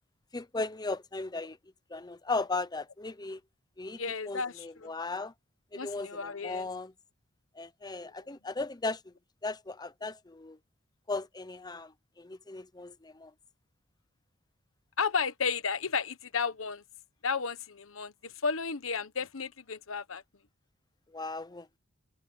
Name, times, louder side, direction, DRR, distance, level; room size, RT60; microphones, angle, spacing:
voice 1, 0.3-1.6 1.9-3.4 3.8-4.0 4.3-5.3 5.7-6.9 7.6-9.0 9.4-10.6 11.1-13.3 21.1-21.7, left 3 dB, 20° left, 0.8 m, -36 dB
voice 2, 4.0-4.9 5.7-6.7 15.0-16.8 17.2-20.2, left 5 dB, 85° left, 1.2 m, -33 dB
head